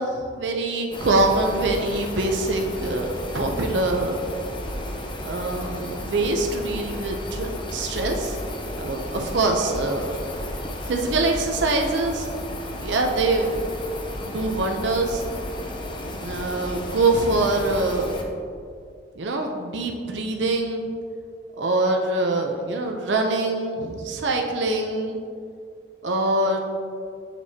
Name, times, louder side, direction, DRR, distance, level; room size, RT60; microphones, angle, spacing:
voice 1, 0.0-4.2 5.2-8.4 8.8-10.1 10.9-12.3 12.8-13.7 14.2-15.2 16.2-18.2 19.2-20.9 21.6-25.2 26.0-26.6, right 2 dB, 85° right, 2 dB, 0.6 m, -24 dB
sound 1, 0.9-18.2, left 1 dB, 25° left, 0.7 m, -33 dB
7.3 x 6.9 x 2.8 m, 2.3 s
head